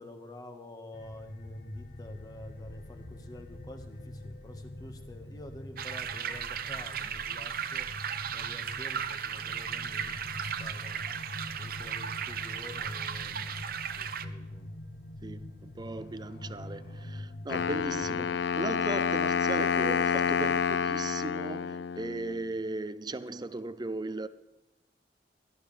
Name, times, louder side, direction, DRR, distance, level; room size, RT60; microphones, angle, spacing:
voice 1, 0.0-7.9 8.3-11.0 11.6-14.7, left 1 dB, 20° left, 1.5 m, -48 dB
sound 1, 0.9-18.3, left 1 dB, 55° left, 0.8 m, -44 dB
sound 2, 5.8-14.3, right 8 dB, 55° right, 0.8 m, -36 dB
voice 2, 15.2-24.3, right 2 dB, 25° right, 0.5 m, -37 dB
Wind instrument woodwind instrument, 17.5-22.5, left 6 dB, 70° left, 0.4 m, -29 dB
17.0 x 13.5 x 3.3 m
head